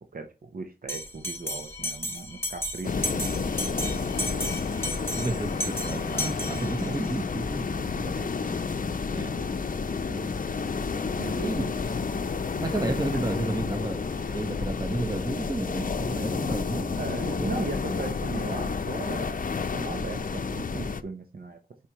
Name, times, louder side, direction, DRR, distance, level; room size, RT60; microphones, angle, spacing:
voice 1, 0.0-3.5 3.8-4.1 7.8-8.6 9.4-9.6 9.9-10.3 11.2-11.4 12.7-13.2 17.0-19.4 19.7-21.6, right 3 dB, 65° right, 0.8 m, -38 dB
Bell, 0.9-7.1, left 1 dB, 15° left, 1.6 m, -34 dB
sound 1, 2.8-21.0, left 5 dB, 55° left, 0.6 m, -30 dB
voice 2, 3.1-4.6 5.1-8.1 9.1-9.4 11.3-12.0 12.4-17.5 17.8-18.2, right 1 dB, 25° right, 1.3 m, -33 dB
8.2 x 4.8 x 3.0 m
wide cardioid pair, 70°, 16 cm